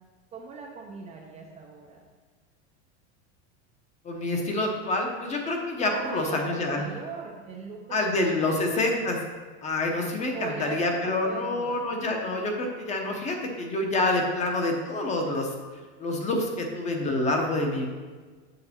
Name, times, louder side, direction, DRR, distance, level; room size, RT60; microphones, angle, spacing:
voice 1, 0.3-2.0 5.8-8.1 8.4-8.8 10.3-11.8, right 4 dB, 20° right, -1 dB, 0.5 m, -39 dB
voice 2, 4.0-6.8 7.9-9.2 9.6-15.5 16.0-17.9, left 2 dB, 20° left, 2 dB, 0.9 m, -27 dB
6.6 x 6.6 x 4.3 m, 1.5 s
supercardioid pair, 160°, 34 cm